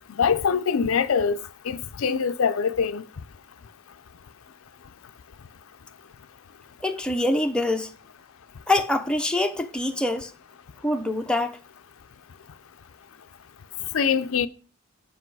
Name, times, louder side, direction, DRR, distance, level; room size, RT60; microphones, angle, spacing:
voice 1, 0.1-3.2 4.8-4.9 13.8-14.5, left 6 dB, 70° left, 0.5 m, -24 dB
voice 2, 6.8-7.9 8.7-10.3 10.8-11.6, left 1 dB, 5° left, 0.6 m, -24 dB
8.3 x 5.3 x 4.7 m
head